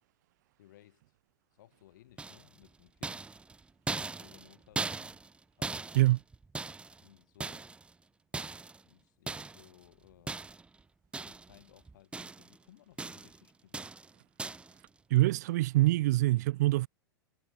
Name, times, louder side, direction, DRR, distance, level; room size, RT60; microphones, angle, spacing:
voice 1, 0.6-1.0 1.5-3.4 3.9-5.2 5.6-5.9 7.0-7.7 8.8-10.4 11.2-13.9, left 14 dB, 55° left, 4.4 m, -60 dB
sound 1, 2.2-2.6 3.0-7.0 7.4-7.9 8.3-8.8 9.3-9.7 10.3-10.7 11.1-11.6 11.9-12.6 13.0-13.4 13.7-14.1 14.4-14.7, right 3 dB, 10° right, 0.8 m, -39 dB
voice 2, 15.1-16.9, right 17 dB, 50° right, 0.5 m, -25 dB
figure-of-eight pair, 90°, 12 cm